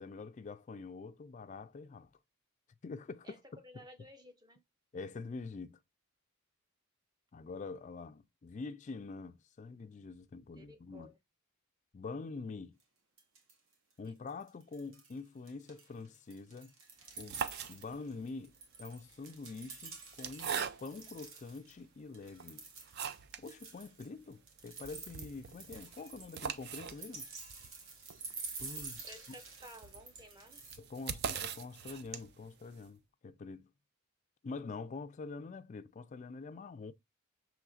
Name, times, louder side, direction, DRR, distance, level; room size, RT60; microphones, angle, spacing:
voice 1, 0.0-2.1 2.8-3.9 4.9-5.8 7.3-11.1 11.9-12.8 14.0-16.7 17.2-17.4 17.7-22.6 23.4-27.3 28.6-29.4 30.8-33.7 34.4-36.9, left 4 dB, 35° left, 0.3 m, -45 dB
voice 2, 3.6-4.6 10.5-11.2 29.0-30.6, equal, 20° right, 0.7 m, -54 dB
sound 1, 12.8-12.9 13.2-13.7 14.0-15.2 15.5-21.7 22.1-30.8, right 4 dB, 65° right, 1.1 m, -49 dB
sound 2, 17.0-18.2 19.1-21.2 21.8-21.9 22.3-23.5 23.8-23.9 24.2-24.3 24.6-32.5, right 7 dB, 50° right, 0.4 m, -42 dB
6.1 x 3.1 x 2.4 m
head